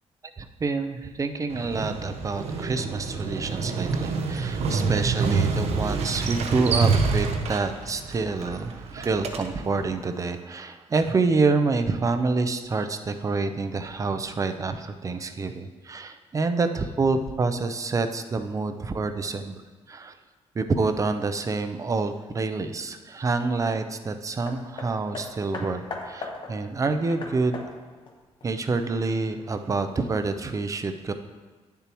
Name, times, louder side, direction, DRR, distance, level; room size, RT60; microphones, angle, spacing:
voice 1, 0.4-19.6 19.9-20.2 20.5-27.6 28.4-31.1, right 3 dB, 30° right, 9 dB, 0.5 m, -27 dB
Motorcycle, 1.5-9.8, right 4 dB, 65° right, 0.7 m, -27 dB
Hammer, 24.5-29.2 30.0-30.1, left 3 dB, 45° left, 1.0 m, -39 dB
9.2 x 6.9 x 3.0 m, 1.3 s
cardioid pair, 115°, 12 cm